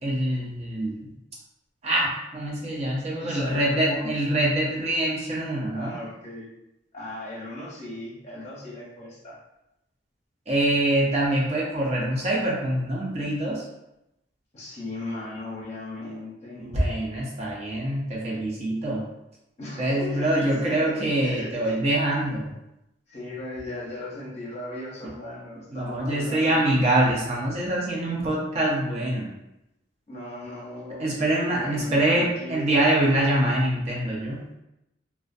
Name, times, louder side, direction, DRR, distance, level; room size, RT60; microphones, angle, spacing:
voice 1, 0.0-1.1 1.8-5.9 10.5-13.6 16.6-19.0 19.8-22.5 25.7-29.3 31.0-34.4, right 1 dB, 35° right, -4 dB, 0.5 m, -24 dB
voice 2, 3.2-4.1 5.7-6.5 6.9-9.4 14.5-16.7 19.6-21.0 21.2-21.8 23.1-26.7 30.1-31.2 31.5-32.7, left 1 dB, 40° left, -6 dB, 0.6 m, -37 dB
2.4 x 2.1 x 2.5 m, 0.89 s
head